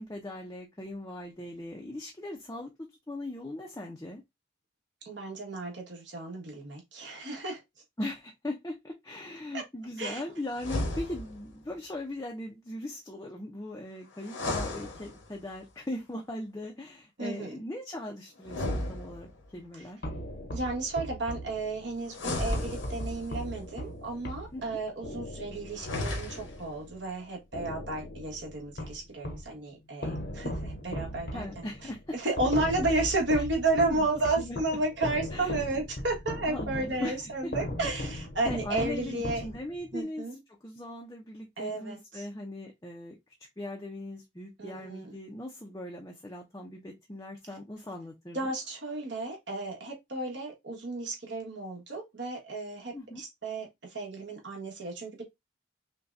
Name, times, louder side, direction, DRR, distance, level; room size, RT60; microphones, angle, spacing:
voice 1, 0.0-4.2 8.0-20.0 24.5-24.8 31.3-32.2 33.4-33.5 33.8-34.1 34.4-34.6 35.3-35.6 36.5-37.5 37.9-38.0 38.4-40.3 40.6-43.2 43.6-48.5 52.9-53.2, left 1 dB, 15° left, 0.6 m, -39 dB
voice 2, 5.0-7.6 9.5-9.6 10.0-10.2 17.2-17.6 20.5-31.5 32.1-39.4 39.9-40.4 41.6-42.2 44.6-45.2 48.3-55.2, right 2 dB, 65° right, 1.5 m, -32 dB
sound 1, 10.5-11.5 14.2-15.5 18.4-19.6 22.1-23.4 25.7-26.7, left 1 dB, 80° left, 1.2 m, -34 dB
sound 2, 20.0-27.1 27.5-29.5 30.0-39.9, left 1 dB, 60° left, 0.9 m, -38 dB
5.6 x 2.3 x 2.6 m
head